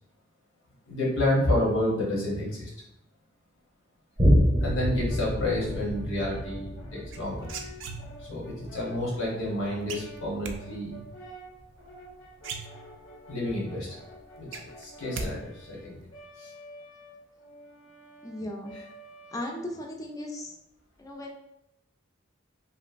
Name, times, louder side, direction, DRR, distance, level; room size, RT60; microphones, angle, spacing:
voice 1, 0.9-2.7 4.6-7.4 8.2-11.0 13.3-13.9 14.4-16.0 16.4-16.5 18.7-18.9, left 1 dB, 90° left, -4 dB, 1.2 m, -29 dB
Boom, 4.2-11.1 11.6-11.7, equal, 25° right, 0.7 m, -28 dB
Brass instrument, 5.1-19.9, equal, 70° left, 0.7 m, -49 dB
sound 1, 7.1-8.4 9.9-10.6 12.0-12.1 12.4-13.2 13.6-13.7 14.0-15.3 15.6-16.0, right 4 dB, 65° right, 0.3 m, -38 dB
voice 2, 18.2-18.7 19.3-20.5 21.0-21.3, left 1 dB, 15° left, 1 dB, 0.4 m, -36 dB
2.9 x 2.5 x 2.5 m, 0.84 s
head